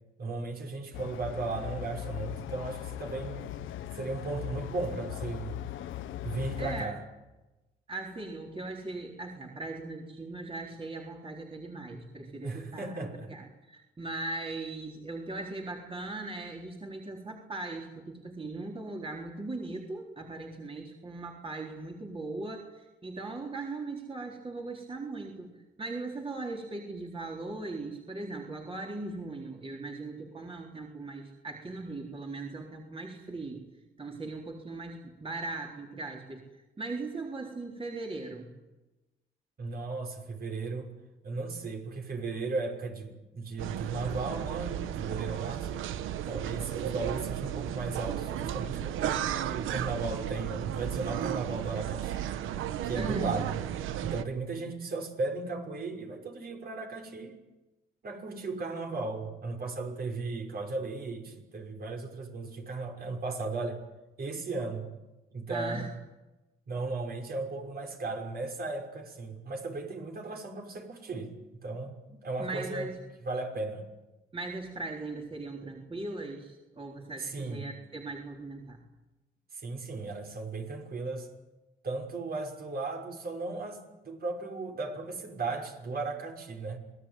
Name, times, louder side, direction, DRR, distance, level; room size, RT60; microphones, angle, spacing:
voice 1, 0.2-3.5 3.9-5.5 6.2-7.0 12.4-13.3 39.6-40.9 41.2-45.8 46.2-52.3 52.8-53.6 54.0-57.4 58.0-63.8 64.2-64.9 65.3-65.9 66.7-71.3 71.6-71.9 72.2-72.9 73.2-73.9 77.2-77.7 79.5-81.3 81.8-86.8, right 3 dB, 50° right, 3 dB, 6.0 m, -36 dB
sound 1, 0.9-6.9, left 13 dB, 80° left, 1.4 m, -39 dB
voice 2, 6.6-6.9 7.9-25.5 25.8-33.7 34.0-36.4 36.8-38.5 52.9-53.3 65.5-65.9 72.4-73.0 74.3-78.8, right 2 dB, 25° right, 0 dB, 4.1 m, -39 dB
sound 2, 43.6-54.2, right 11 dB, 85° right, 1.3 m, -34 dB
27.0 x 19.5 x 9.3 m, 1.1 s
cardioid pair, 90°, 20 cm